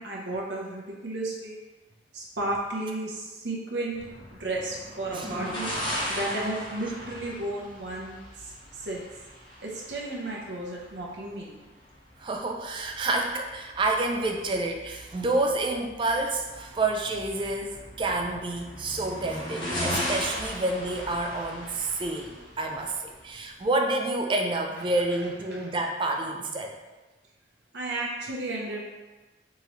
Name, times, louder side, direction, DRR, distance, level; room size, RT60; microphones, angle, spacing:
voice 1, 0.0-1.6 2.1-4.0 4.4-5.7 6.1-8.2 8.8-9.1 9.6-11.5 27.7-28.8, right 2 dB, 65° right, -2 dB, 0.7 m, -33 dB
sound 1, 3.9-23.6, equal, 25° left, 0.8 m, -38 dB
voice 2, 5.1-5.6 5.9-6.1 12.2-26.8, right 2 dB, 25° right, 2 dB, 0.3 m, -29 dB
3.7 x 3.0 x 3.0 m, 1.2 s
head